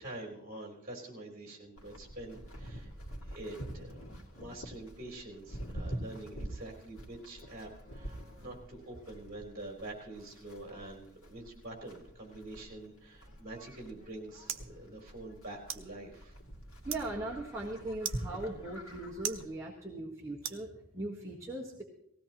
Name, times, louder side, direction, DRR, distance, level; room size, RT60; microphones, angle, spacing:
voice 1, 0.0-2.9 3.2-16.4, right 2 dB, 45° right, 1 dB, 3.9 m, -46 dB
Livestock farm animals working animals, 1.8-19.4, right 1 dB, 85° left, 2.3 m, -46 dB
sound 1, 13.7-21.2, right 9 dB, 65° right, 0.9 m, -45 dB
voice 2, 16.8-21.8, right 2 dB, 15° right, -5 dB, 1.5 m, -39 dB
19.0 x 16.5 x 3.0 m, 0.76 s
head